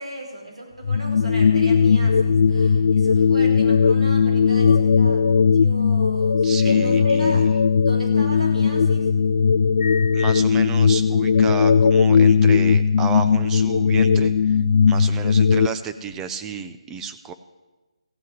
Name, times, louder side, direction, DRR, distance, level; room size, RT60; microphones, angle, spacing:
voice 1, 0.0-7.5 7.8-9.1 15.0-15.4, right 1 dB, 85° right, -2 dB, 5.0 m, -37 dB
sound 1, 0.8-15.7, left 6 dB, 60° left, 0.3 m, -18 dB
sound 2, 1.9-5.6 5.9-6.1 6.4-6.6 7.0-7.1 7.3-7.4 7.9-16.2, right 1 dB, 45° right, 3.3 m, -44 dB
voice 2, 6.4-7.5 10.1-17.3, right 6 dB, 10° right, 8 dB, 0.4 m, -32 dB
15.0 x 5.6 x 9.6 m, 1.1 s
figure-of-eight pair, 150°, 3 cm